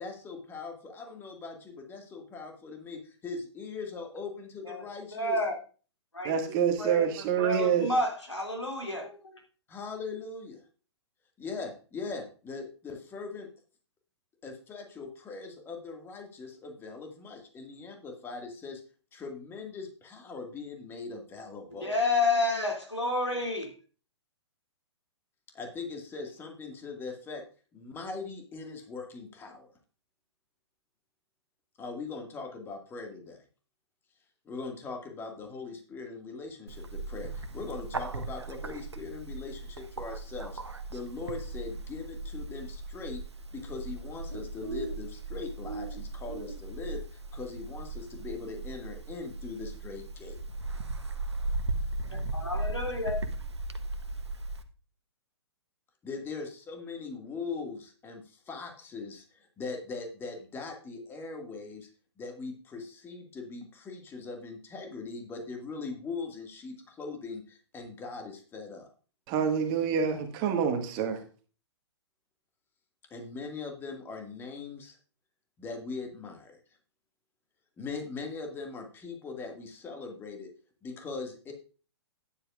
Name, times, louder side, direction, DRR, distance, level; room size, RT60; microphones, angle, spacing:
voice 1, 0.0-5.4 9.7-10.6 11.4-13.5 14.4-18.8 19.1-22.0 25.5-27.4 27.7-29.7 31.8-33.4 34.5-43.2 43.5-50.4 56.0-61.9 62.2-68.9 73.1-75.0 75.6-76.6 77.8-80.5 80.8-81.5, left 4 dB, 15° left, 3 dB, 2.0 m, -40 dB
voice 2, 4.6-5.6 6.1-6.3 6.8-9.4 21.7-23.7 52.3-53.1, left 2 dB, 85° left, 1 dB, 2.8 m, -30 dB
voice 3, 6.2-7.9 69.3-71.2, right 7 dB, 30° right, 5 dB, 1.7 m, -27 dB
Bird, 36.7-54.6, right 2 dB, 75° right, 1.0 m, -37 dB
12.0 x 10.5 x 2.5 m, 0.38 s
figure-of-eight pair, 115°, 14 cm